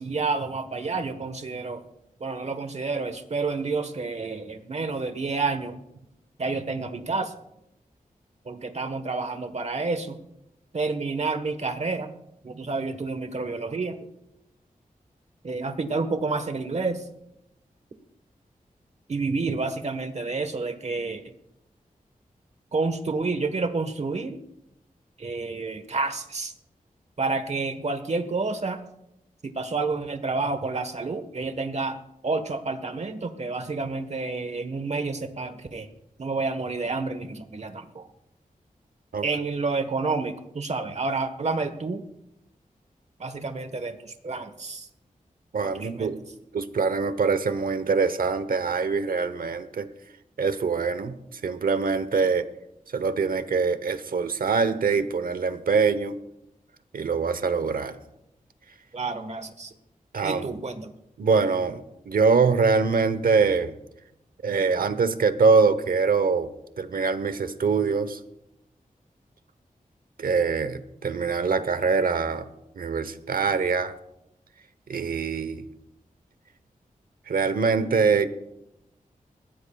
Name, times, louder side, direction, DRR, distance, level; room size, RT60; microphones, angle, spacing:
voice 1, 0.0-1.8 2.2-5.8 6.4-7.3 8.4-10.2 10.7-12.2 12.4-14.0 15.4-17.0 19.1-21.3 22.7-24.4 25.2-26.5 27.2-28.8 29.4-32.0 32.2-35.9 36.2-38.1 39.2-42.0 43.2-44.9 45.6-46.1 58.9-59.7 60.2-61.0, right 3 dB, 50° right, 9 dB, 1.3 m, -29 dB
voice 2, 45.5-46.2 46.5-49.9 50.4-52.5 52.9-56.2 56.9-58.0 60.1-60.6 61.2-63.7 64.4-66.5 66.8-68.2 70.2-72.5 72.8-73.9 74.9-75.7 77.3-78.3, right 5 dB, 85° right, 13 dB, 0.9 m, -24 dB
21.0 x 15.5 x 2.3 m, 0.83 s
wide cardioid pair, 80°, 14 cm